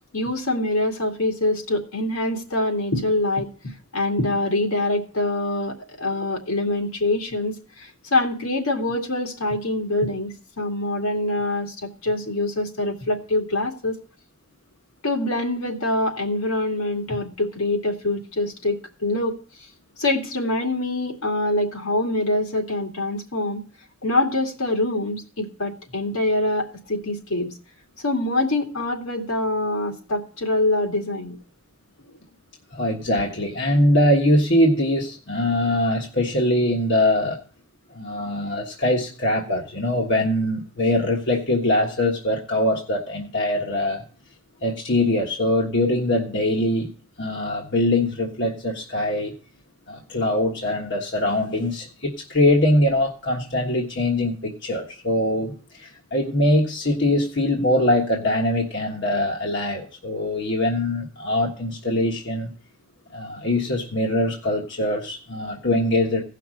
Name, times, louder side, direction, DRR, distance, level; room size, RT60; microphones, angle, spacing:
voice 1, 0.1-3.5 3.9-14.0 15.0-19.4 20.0-23.6 24.0-27.5 28.0-31.4, left 2 dB, 75° left, 2 dB, 2.3 m, -24 dB
voice 2, 32.7-37.4 37.9-44.0 44.6-46.9 47.2-49.3 49.9-62.5 63.1-66.2, left 1 dB, 55° left, 0 dB, 1.5 m, -22 dB
16.5 x 5.9 x 6.3 m, 0.41 s
head